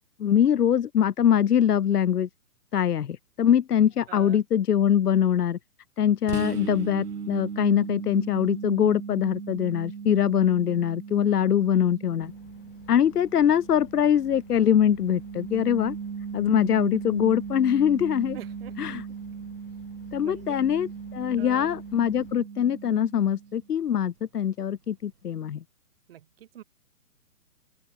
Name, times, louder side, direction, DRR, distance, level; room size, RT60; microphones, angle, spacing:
voice 1, 0.2-2.3 2.7-5.6 6.0-12.3 12.9-16.0 16.3-18.4 18.8-19.0 20.1-25.6, left 9 dB, 85° left, 1.0 m, -23 dB
voice 2, 4.1-4.4 18.3-18.8 20.2-20.6 21.4-21.8 26.1-26.6, right 11 dB, 40° right, 3.7 m, -44 dB
sound 1, 6.3-23.8, right 6 dB, 90° right, 3.1 m, -38 dB
sound 2, 12.2-22.4, left 13 dB, 35° left, 6.5 m, -53 dB
open air
hypercardioid pair, 165°, 45 cm